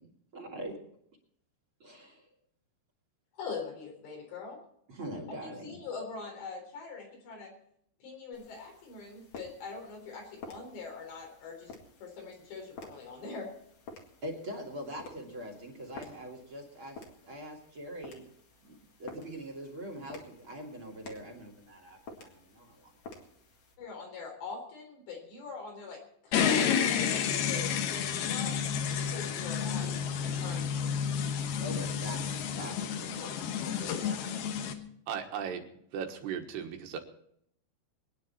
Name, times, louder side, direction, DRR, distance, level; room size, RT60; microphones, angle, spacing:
voice 1, 0.3-0.8 1.8-2.3 4.9-5.8 14.2-18.2 18.6-22.9 31.6-34.3, equal, 35° right, -1 dB, 3.2 m, -43 dB
voice 2, 3.4-4.6 5.4-7.5 8.0-11.7 12.0-13.5 23.8-26.0 26.2-28.6 29.0-30.8, left 4 dB, 90° left, 1 dB, 6.1 m, -43 dB
sound 1, 8.3-23.8, left 3 dB, 45° left, 2.6 m, -52 dB
sound 2, 26.3-34.7, left 7 dB, 70° left, 3.0 m, -30 dB
voice 3, 35.1-35.7 35.9-37.0, right 8 dB, 80° right, 4 dB, 3.6 m, -36 dB
23.0 x 10.0 x 4.3 m, 0.70 s
omnidirectional pair, 4.8 m